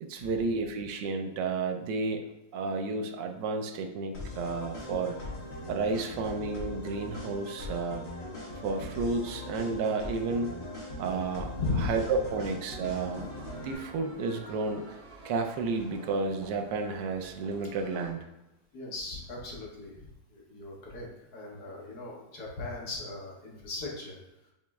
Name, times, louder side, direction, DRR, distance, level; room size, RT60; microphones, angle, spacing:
voice 1, 0.0-2.3 2.5-5.2 5.7-8.0 8.6-10.6 11.0-11.6 11.8-13.3 13.5-15.0 15.2-18.2, right 4 dB, 85° right, 5 dB, 1.2 m, -31 dB
sound 1, 4.1-13.7, left 1 dB, 40° left, 1.5 m, -40 dB
voice 2, 11.6-12.0 18.7-24.2, left 3 dB, 65° left, -2 dB, 1.5 m, -37 dB
sound 2, 13.1-18.1, right 1 dB, 65° right, 1.5 m, -50 dB
7.3 x 3.0 x 2.3 m, 0.93 s
omnidirectional pair, 1.9 m